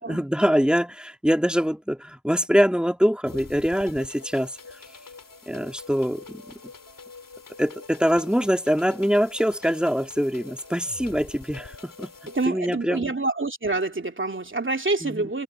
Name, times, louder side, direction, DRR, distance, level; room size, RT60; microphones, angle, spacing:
voice 1, 0.1-4.6 5.5-6.4 7.6-12.1 12.5-13.1 15.0-15.3, equal, 5° right, 2.0 m, -24 dB
sound 1, 3.2-12.5, left 4 dB, 80° left, 3.2 m, -45 dB
voice 2, 12.3-15.4, right 3 dB, 40° right, 2.8 m, -27 dB
cardioid pair, 45°, 32 cm